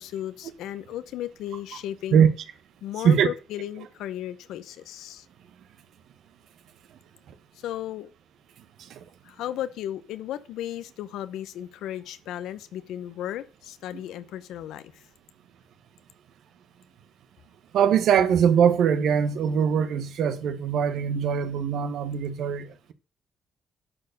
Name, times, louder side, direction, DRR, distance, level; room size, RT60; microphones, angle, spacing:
voice 1, 0.0-2.3 2.8-5.3 7.6-8.1 9.2-15.0, left 12 dB, 85° left, 0.9 m, -35 dB
voice 2, 17.7-22.9, right 8 dB, 75° right, 1.2 m, -22 dB
11.0 x 4.6 x 6.7 m
cardioid pair, 90°, 0 cm